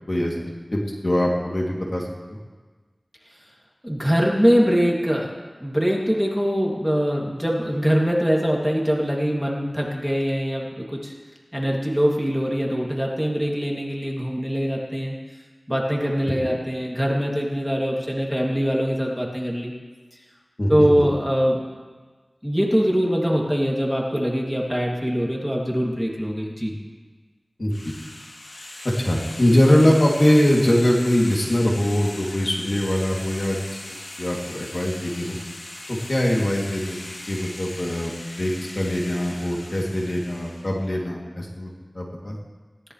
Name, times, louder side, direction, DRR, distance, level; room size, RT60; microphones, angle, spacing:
voice 1, 0.7-2.0 16.3-16.4 20.6-21.0 27.6-27.7 29.0-33.6 34.2-35.4 35.9-38.1 38.4-42.3, left 1 dB, 45° left, -3 dB, 2.9 m, -22 dB
voice 2, 3.8-5.3 5.6-11.1 11.5-15.1 15.7-19.7 20.7-21.6 22.4-26.8, equal, ahead, -2 dB, 2.7 m, -23 dB
sound 1, 27.7-40.8, left 1 dB, 85° left, 3.0 m, -39 dB
20.5 x 18.0 x 3.3 m, 1.4 s
wide cardioid pair, 60°, 0 cm